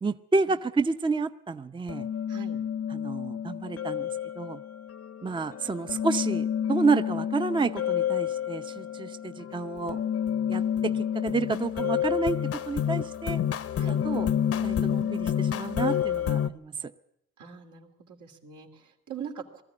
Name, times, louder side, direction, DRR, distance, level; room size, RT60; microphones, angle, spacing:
voice 1, 0.0-2.1 2.9-4.1 4.4-4.6 5.2-10.0 10.5-12.4 12.7-13.4 13.9-14.3 14.6-16.9, right 4 dB, 15° right, 10 dB, 0.6 m, -30 dB
sound 1, 1.9-16.5, left 9 dB, 50° left, 0.8 m, -29 dB
voice 2, 2.3-2.6 13.7-14.0 17.4-19.6, right 7 dB, 75° right, 2 dB, 2.8 m, -42 dB
19.5 x 14.0 x 9.7 m, 0.84 s
cardioid pair, 90°, 30 cm